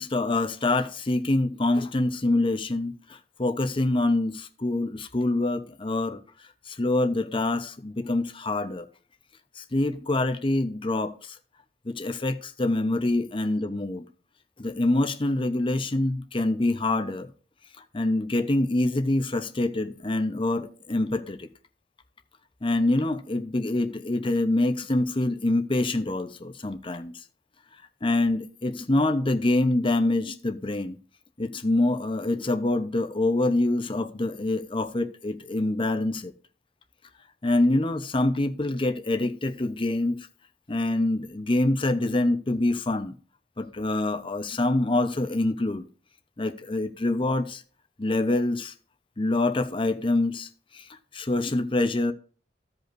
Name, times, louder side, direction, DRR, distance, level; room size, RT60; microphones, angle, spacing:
voice 1, 0.0-6.2 6.7-8.9 9.6-11.4 11.8-14.0 14.6-17.3 17.9-21.5 22.6-27.1 28.0-31.0 31.4-36.3 37.4-40.3 40.7-43.2 43.6-45.8 46.4-47.6 48.0-48.7 49.2-50.5 50.7-50.9 51.1-52.1, left 2 dB, 30° left, 0.8 m, -25 dB
15.5 x 5.3 x 2.6 m
head